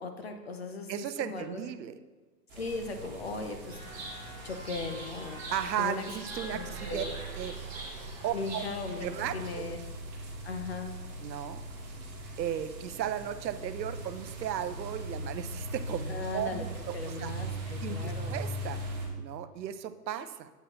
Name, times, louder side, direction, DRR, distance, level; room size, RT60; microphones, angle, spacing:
voice 1, 0.0-1.7 2.5-3.8 4.4-5.4 5.8-6.1 6.4-7.1 8.3-9.1 9.3-9.8 10.4-11.0 16.1-16.6 16.9-18.5, left 3 dB, 40° left, 6 dB, 0.5 m, -38 dB
voice 2, 0.9-1.9 5.5-7.0 7.4-7.5 8.2-8.6 9.0-9.6 11.2-11.6 12.4-16.9 17.2-17.3 17.8-18.8 19.2-20.5, right 10 dB, 85° right, 11 dB, 0.6 m, -35 dB
sound 1, 2.5-19.1, right 1 dB, 25° right, 1.3 m, -40 dB
Chirp tweet, 3.7-9.5, right 1 dB, 5° right, 0.8 m, -44 dB
8.1 x 5.6 x 2.9 m, 1.3 s
hypercardioid pair, 155°, 50 cm